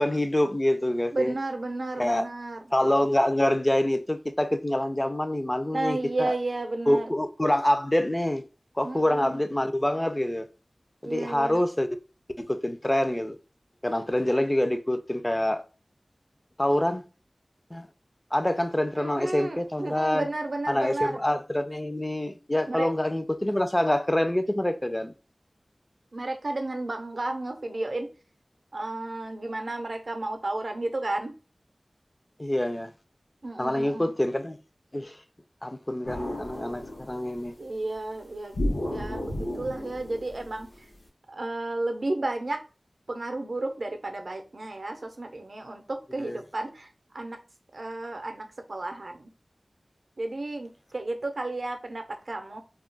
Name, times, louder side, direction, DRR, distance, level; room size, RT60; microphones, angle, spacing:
voice 1, 0.0-1.3 2.0-2.3 2.7-6.3 6.9-8.4 8.8-10.5 11.0-11.9 12.4-13.4 13.8-15.6 16.6-17.0 17.7-17.9 18.3-20.3 20.7-25.1 32.4-32.9 33.6-34.6 34.9-35.2 35.6-37.5 46.2-46.4, left 1 dB, 25° left, 0.3 m, -26 dB
voice 2, 1.1-2.6 5.7-7.1 8.8-9.4 11.0-11.6 19.0-21.2 22.7-22.9 26.1-28.1 28.7-31.4 33.4-34.1 37.6-40.8 41.3-42.6 43.1-47.4 47.7-49.3 50.2-52.6, right 2 dB, 70° right, 0.5 m, -32 dB
sound 1, 36.0-37.5 38.5-41.0, left 1 dB, 80° left, 0.8 m, -33 dB
2.3 x 2.1 x 3.8 m
wide cardioid pair, 60°, 0 cm